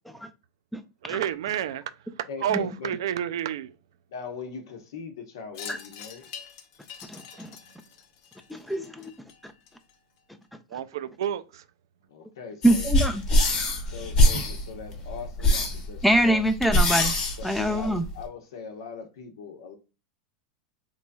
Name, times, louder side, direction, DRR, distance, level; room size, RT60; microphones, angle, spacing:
voice 1, 1.0-1.8 2.2-3.7 10.7-11.6, right 10 dB, 85° right, 0.4 m, -30 dB
voice 2, 2.3-2.9 4.1-6.3 12.1-12.9 13.9-16.4 17.4-19.8, left 6 dB, 80° left, 0.9 m, -41 dB
Wind chime, 5.5-10.2, left 8 dB, 50° left, 0.6 m, -45 dB
voice 3, 7.1-7.6 8.7-9.1 9.4-9.5 12.6-13.2 16.0-17.2 17.4-18.0, right 1 dB, ahead, 0.3 m, -24 dB
sound 1, 12.6-18.2, left 1 dB, 30° left, 1.0 m, -24 dB
4.0 x 3.1 x 2.2 m
supercardioid pair, 160°, 2 cm